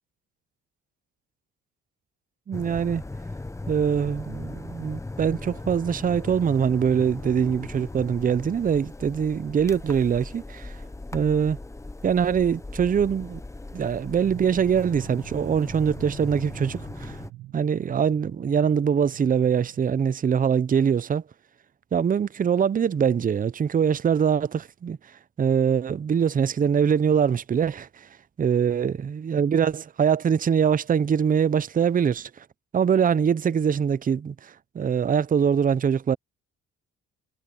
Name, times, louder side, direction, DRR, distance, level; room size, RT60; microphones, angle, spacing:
sound 1, 2.5-17.3, left 2 dB, 10° left, 0.7 m, -38 dB
voice 1, 2.5-3.0 3.7-10.8 11.1-11.6 12.0-13.4 13.7-17.2 17.5-21.2 21.9-25.0 25.4-28.1 28.4-32.5 32.7-36.2, right 7 dB, 30° right, 0.5 m, -23 dB
sound 2, 14.2-19.8, right 16 dB, 80° right, 1.3 m, -44 dB
cardioid pair, 90°, 30 cm